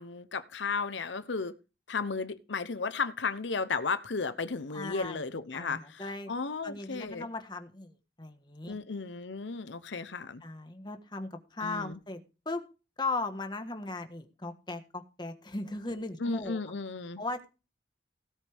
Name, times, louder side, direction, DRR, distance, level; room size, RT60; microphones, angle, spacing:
voice 1, 0.0-1.5 1.9-7.3 8.7-10.4 11.6-12.0 16.2-17.2, left 4 dB, 90° left, 0.9 m, -34 dB
voice 2, 4.7-5.2 5.5-6.3 6.6-8.8 10.4-12.6 13.0-16.6 17.2-17.5, left 3 dB, 25° left, 1.4 m, -37 dB
17.0 x 8.4 x 3.5 m
head